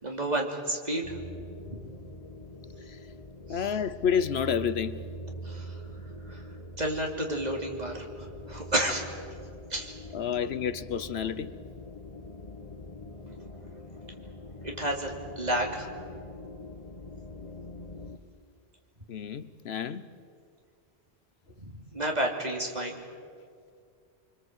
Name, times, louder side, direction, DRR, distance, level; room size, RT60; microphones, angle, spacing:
voice 1, 0.0-1.2 1.6-1.8 3.5-3.8 5.4-5.9 6.3-6.5 6.8-9.1 9.7-10.0 14.6-15.9 21.6-23.0, right 1 dB, 40° right, 3.2 m, -31 dB
sound 1, 1.0-18.2, equal, 35° left, 1.2 m, -44 dB
voice 2, 3.5-5.0 10.1-11.5 19.1-20.1, left 7 dB, 70° left, 1.0 m, -29 dB
25.0 x 25.0 x 8.1 m
omnidirectional pair, 1.1 m